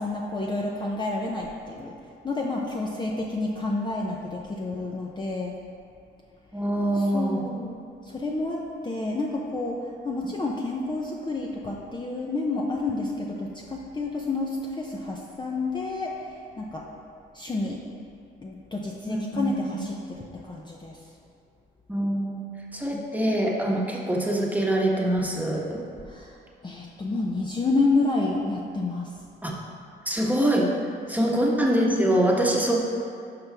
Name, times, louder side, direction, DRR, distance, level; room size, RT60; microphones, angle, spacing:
voice 1, 0.0-2.0 2.2-5.6 6.9-16.9 17.3-17.8 18.4-21.0 22.9-23.1 26.1-26.4 26.6-29.2 31.1-31.3, left 2 dB, 20° left, -2 dB, 0.7 m, -29 dB
voice 2, 6.5-7.4 19.0-19.8 21.9-22.5 22.7-25.8 29.4-29.5 30.0-30.7 31.1-32.8, right 1 dB, 10° right, -2 dB, 1.3 m, -24 dB
10.5 x 5.4 x 3.5 m, 2.3 s
cardioid pair, 90°, 20 cm